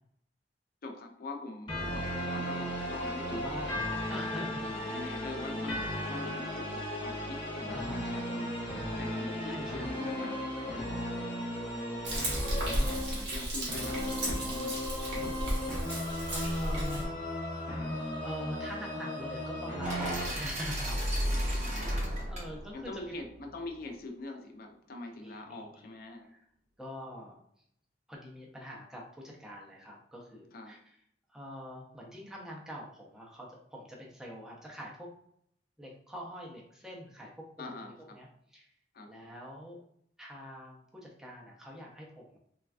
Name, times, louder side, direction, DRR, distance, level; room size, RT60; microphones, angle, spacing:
voice 1, 0.8-3.4 4.7-8.6 9.0-10.9 13.1-14.8 21.6-21.9 22.7-26.3 30.5-30.7 37.6-38.2 38.9-39.1, left 2 dB, 55° left, 3 dB, 0.5 m, -43 dB
sound 1, 1.7-20.3, left 1 dB, 30° left, 0.9 m, -36 dB
voice 2, 3.3-3.8 4.1-4.6 7.7-8.1 9.4-10.0 16.3-17.0 18.2-21.4 21.7-21.9 22.3-23.1 25.1-25.9 26.3-26.4 26.8-27.4 28.1-30.9 31.3-35.1 35.8-38.7 39.1-39.8 40.2-42.4, equal, 5° right, -3 dB, 0.5 m, -44 dB
Frying (food), 12.0-17.0, right 1 dB, 80° right, 1.0 m, -34 dB
sound 2, 19.8-23.9, equal, 40° right, 0.7 m, -34 dB
3.2 x 2.3 x 2.4 m, 0.70 s
head